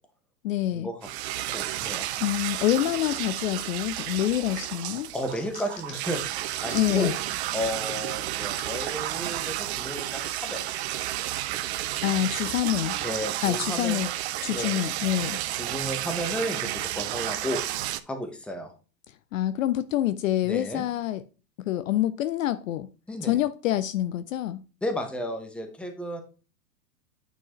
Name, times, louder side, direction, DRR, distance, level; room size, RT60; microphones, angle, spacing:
voice 1, 0.4-0.9 2.2-5.1 6.7-7.2 12.0-13.0 13.4-14.1 14.4-15.4 19.1-21.2 21.6-22.9 23.2-24.6, left 13 dB, 55° left, 0.5 m, -26 dB
sound 1, 1.0-18.0, right 14 dB, 45° right, 0.5 m, -32 dB
voice 2, 1.5-2.1 5.1-7.1 7.5-10.6 13.0-14.1 14.5-14.8 15.5-18.7 20.4-20.8 23.1-23.4 24.8-26.2, equal, ahead, 0.8 m, -33 dB
sound 2, 4.0-4.4 4.8-6.1 6.6-7.1 7.6-7.7 8.6-8.7 9.5-9.6, left 7 dB, 70° left, 1.2 m, -45 dB
9.0 x 4.6 x 2.9 m
hypercardioid pair, 110°, 49 cm